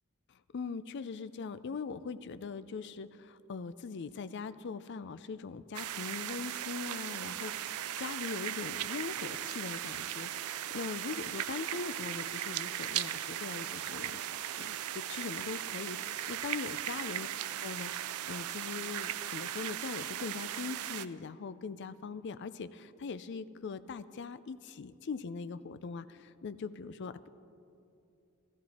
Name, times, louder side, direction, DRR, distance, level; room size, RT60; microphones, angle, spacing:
voice 1, 0.3-14.2 14.5-17.3 17.6-27.3, left 5 dB, 55° left, 13 dB, 0.4 m, -41 dB
sound 1, 5.7-21.1, right 11 dB, 90° right, 0.4 m, -38 dB
16.0 x 14.0 x 4.2 m, 2.7 s
head